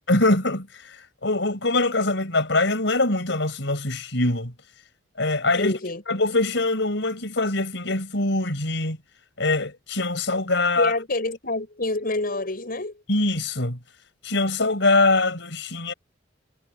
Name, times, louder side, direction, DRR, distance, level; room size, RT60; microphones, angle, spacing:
voice 1, 0.1-4.5 5.2-5.7 6.1-9.0 9.4-10.9 13.1-13.8 14.2-15.9, left 2 dB, 70° left, 6.9 m, -23 dB
voice 2, 5.5-6.0 10.8-13.0, left 2 dB, 50° left, 6.8 m, -27 dB
head